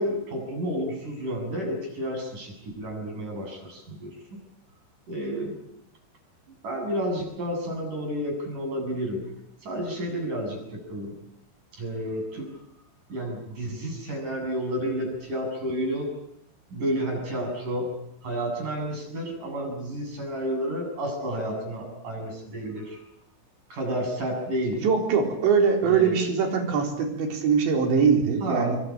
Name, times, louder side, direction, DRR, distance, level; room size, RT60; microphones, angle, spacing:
voice 1, 0.0-4.2 5.1-5.6 6.6-9.2 9.6-11.2 11.8-12.5 13.1-16.1 16.7-17.9 18.2-23.0 23.7-24.9 25.8-26.2 28.4-28.8, equal, 40° right, 2 dB, 9.1 m, -31 dB
voice 2, 24.8-28.8, right 6 dB, 70° right, 4 dB, 6.3 m, -22 dB
26.0 x 23.0 x 8.8 m, 0.79 s
omnidirectional pair, 5.4 m